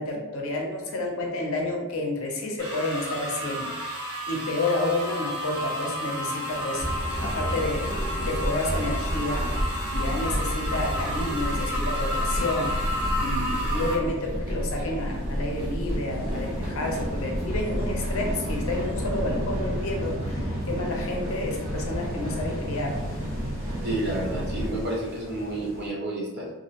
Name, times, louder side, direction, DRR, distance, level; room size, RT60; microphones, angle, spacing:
voice 1, 0.0-6.9 7.2-7.9 8.2-9.5 9.9-23.0, left 2 dB, 65° left, 0 dB, 0.5 m, -30 dB
sound 1, 2.6-13.9, equal, 20° right, 0.9 m, -32 dB
sound 2, 6.5-25.9, equal, 10° left, 0.6 m, -44 dB
sound 3, 6.8-24.8, equal, 90° right, 0.8 m, -30 dB
voice 2, 23.8-26.5, right 1 dB, 50° right, -3 dB, 0.6 m, -30 dB
2.5 x 2.0 x 2.7 m, 1.2 s
head